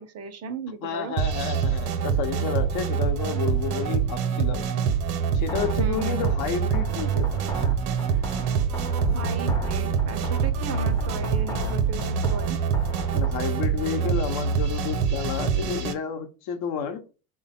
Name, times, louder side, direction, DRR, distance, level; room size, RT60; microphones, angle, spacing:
voice 1, 0.0-1.2 5.8-6.3 8.1-8.3 9.1-12.6, right 5 dB, 35° right, 0.5 m, -36 dB
voice 2, 0.8-4.7 5.3-7.5 13.1-17.0, left 7 dB, 55° left, 0.8 m, -31 dB
sound 1, 1.2-15.9, right 7 dB, 75° right, 0.8 m, -25 dB
sound 2, 5.5-13.5, right 3 dB, 10° left, 0.6 m, -36 dB
Bowed string instrument, 9.1-12.5, left 6 dB, 80° left, 0.5 m, -39 dB
3.3 x 2.2 x 4.1 m
hypercardioid pair, 85°, 45 cm